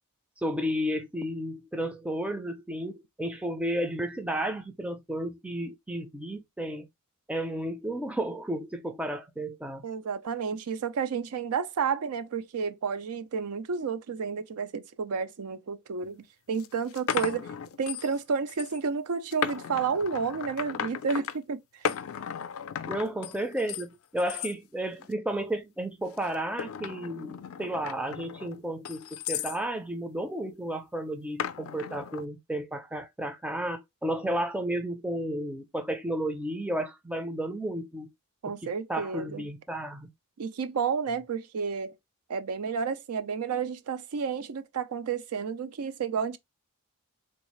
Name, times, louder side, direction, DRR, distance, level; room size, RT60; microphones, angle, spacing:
voice 1, 0.4-6.8 7.3-9.8 22.8-38.1 38.9-40.1, right 1 dB, 5° right, 0.4 m, -32 dB
voice 2, 9.8-17.5 17.8-21.9 38.4-39.5 40.4-41.9 42.3-46.4, right 6 dB, 75° right, 0.5 m, -31 dB
sound 1, 16.0-16.1 16.6-18.2 18.5-18.8 19.3-21.4 21.8-23.8 24.2-24.5 25.0-25.4 26.1-29.6 31.4-32.2, left 8 dB, 65° left, 0.4 m, -35 dB
3.6 x 2.4 x 3.0 m
head